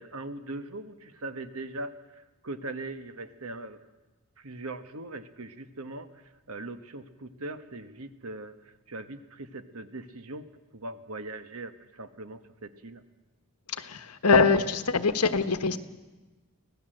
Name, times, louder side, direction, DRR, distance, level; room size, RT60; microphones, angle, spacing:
voice 1, 0.0-3.8 4.4-10.5 10.7-13.0, right 2 dB, 70° right, 10 dB, 1.4 m, -40 dB
voice 2, 13.7-15.8, left 4 dB, 85° left, 10 dB, 1.2 m, -23 dB
24.5 x 17.5 x 7.8 m, 1.2 s
head